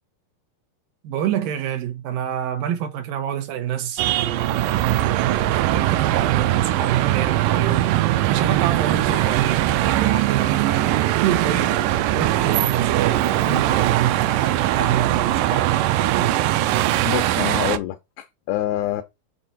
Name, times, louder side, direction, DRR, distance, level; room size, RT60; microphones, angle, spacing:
voice 1, 1.0-8.0 8.3-11.8 12.1-14.3 14.7-16.4, right 10 dB, 70° right, 2.8 m, -27 dB
sound 1, 4.0-17.8, right 14 dB, 90° right, 1.8 m, -21 dB
voice 2, 17.0-19.0, left 14 dB, 85° left, 2.7 m, -26 dB
6.8 x 4.4 x 4.4 m
omnidirectional pair, 4.5 m